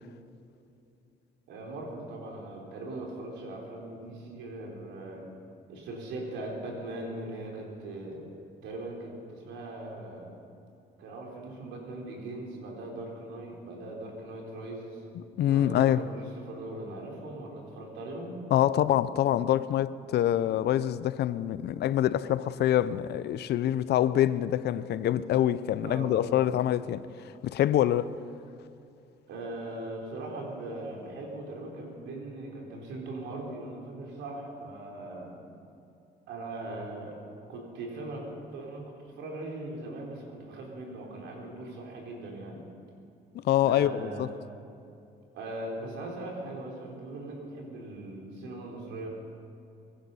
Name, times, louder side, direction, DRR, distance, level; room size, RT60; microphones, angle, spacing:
voice 1, 1.5-5.3 5.7-8.2 8.6-10.4 11.0-15.0 15.5-18.4 25.8-26.5 29.3-35.4 36.3-37.2 37.5-42.6 43.7-44.4 45.3-49.1, right 2 dB, 80° right, 3.9 m, -40 dB
voice 2, 15.2-16.0 18.5-27.0 27.4-28.1 43.3-44.3, left 12 dB, 65° left, 0.6 m, -25 dB
23.0 x 10.5 x 5.5 m
cardioid pair, 90°, 18 cm